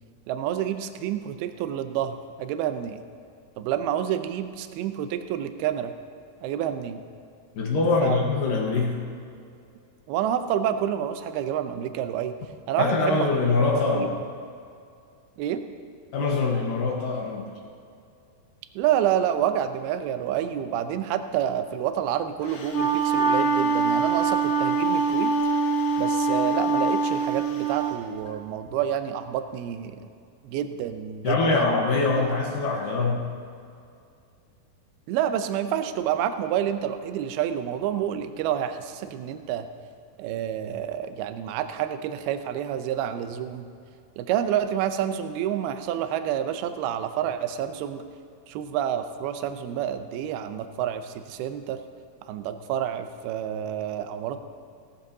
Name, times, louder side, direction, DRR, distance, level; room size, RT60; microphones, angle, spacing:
voice 1, 0.3-3.0 3.6-5.9 6.4-7.0 8.0-8.2 10.1-12.3 12.7-13.3 13.9-14.1 15.4-15.6 18.8-25.3 26.0-30.0 30.4-31.8 32.1-32.3 35.1-39.7 40.2-43.7 44.2-48.0 48.5-51.8 52.3-54.4, right 10 dB, 80° right, 9 dB, 2.4 m, -28 dB
voice 2, 7.6-9.1 12.8-14.1 16.1-17.5 31.2-33.3, left 3 dB, 65° left, -1 dB, 2.5 m, -24 dB
Wind instrument woodwind instrument, 22.5-27.9, right 4 dB, 85° left, 4.0 m, -24 dB
17.0 x 13.0 x 2.8 m, 2.4 s
omnidirectional pair, 4.8 m